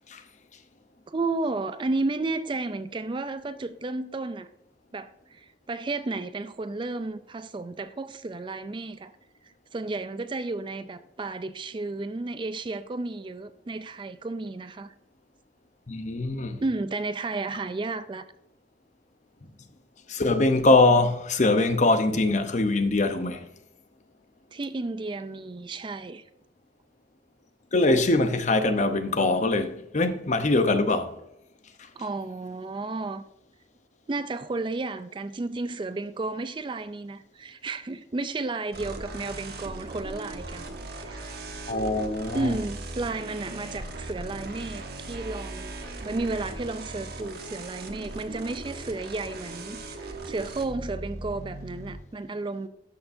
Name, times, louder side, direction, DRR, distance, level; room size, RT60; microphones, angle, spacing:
voice 1, 1.1-4.5 4.9-9.1 9.4-14.9 16.6-18.3 24.5-26.2 32.0-33.2 34.1-41.3 42.3-52.7, right 3 dB, 25° right, 0.4 m, -32 dB
voice 2, 15.9-16.6 20.1-23.5 27.7-31.2 41.7-42.6, left 2 dB, 40° left, 0.8 m, -23 dB
sound 1, 38.7-52.0, right 2 dB, 60° right, 1.2 m, -38 dB
12.5 x 6.6 x 2.6 m
head